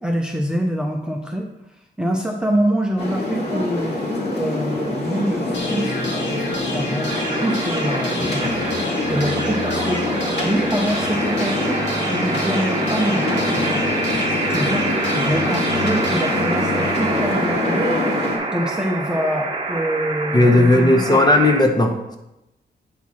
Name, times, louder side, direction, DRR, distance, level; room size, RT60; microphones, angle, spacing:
voice 1, 0.0-7.1 7.4-8.6 9.1-10.1 10.4-13.9 14.5-17.9 18.2-21.2, right 1 dB, 5° right, 2 dB, 0.6 m, -25 dB
sound 1, 3.0-18.4, left 2 dB, 65° left, 2.3 m, -25 dB
sound 2, 5.5-17.5, left 2 dB, 90° left, 1.6 m, -30 dB
sound 3, 7.1-21.6, right 3 dB, 30° right, 0.9 m, -27 dB
voice 2, 20.3-22.2, left 1 dB, 25° left, 4 dB, 0.8 m, -15 dB
8.4 x 4.5 x 4.3 m, 0.92 s
wide cardioid pair, 125°, 18 cm